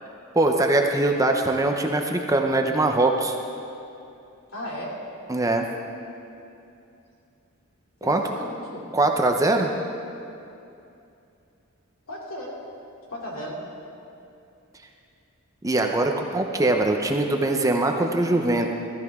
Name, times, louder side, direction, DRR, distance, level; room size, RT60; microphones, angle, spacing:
voice 1, 0.3-3.3 5.3-5.7 8.0-8.2 8.9-9.7 15.6-18.7, right 2 dB, 15° right, 3 dB, 0.7 m, -22 dB
voice 2, 4.5-5.0 8.0-8.8 12.1-12.6 13.1-13.6, equal, 70° left, -3 dB, 2.7 m, -35 dB
15.0 x 14.0 x 3.6 m, 2.6 s
head